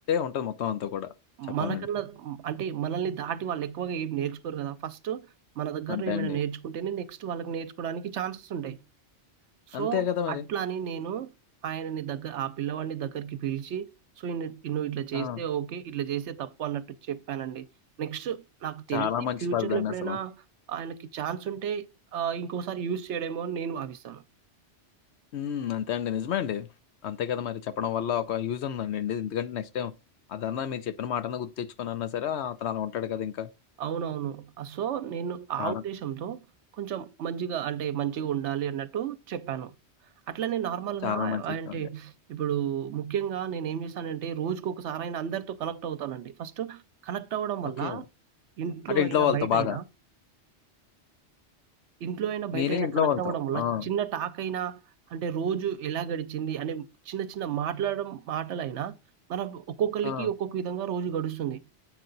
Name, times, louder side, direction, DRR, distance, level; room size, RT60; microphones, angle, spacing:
voice 1, 0.1-1.1 1.6-1.9 5.9-6.4 9.7-10.4 15.1-15.4 18.9-20.2 25.3-26.7 27.0-29.9 30.3-33.5 35.6-35.8 41.0-41.9 47.8-48.0 48.9-49.8 52.5-53.9 60.0-60.3, left 9 dB, 70° left, 0.9 m, -29 dB
voice 2, 1.4-5.3 5.6-8.8 9.7-11.3 11.6-13.9 14.2-17.7 18.0-20.3 20.7-24.2 33.8-36.4 36.7-39.7 40.3-48.0 48.6-49.8 52.0-54.8 55.1-59.0 59.3-61.6, right 9 dB, 75° right, 1.0 m, -32 dB
7.8 x 5.5 x 3.9 m
omnidirectional pair, 1.2 m